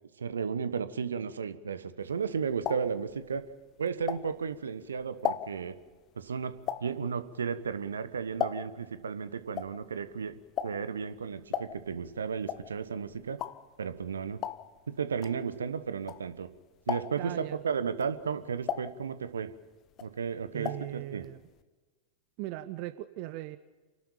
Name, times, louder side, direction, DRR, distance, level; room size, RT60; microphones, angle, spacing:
voice 1, 0.2-3.4 3.8-5.8 6.1-6.5 6.8-10.4 10.6-13.4 13.8-14.4 14.9-16.5 16.9-19.5 20.0-21.3, right 6 dB, 70° right, 12 dB, 1.2 m, -34 dB
sound 1, 2.1-4.6 5.0-8.9 9.2-16.5 16.8-17.4 17.9-19.6 19.9-21.0 21.2-21.3 21.6-21.7, left 10 dB, 35° left, 1.0 m, -37 dB
voice 2, 17.2-17.6 20.5-21.4 22.4-23.6, right 16 dB, 45° right, 12 dB, 0.8 m, -39 dB
28.5 x 12.0 x 8.9 m, 1.3 s
figure-of-eight pair, 90°, 0 cm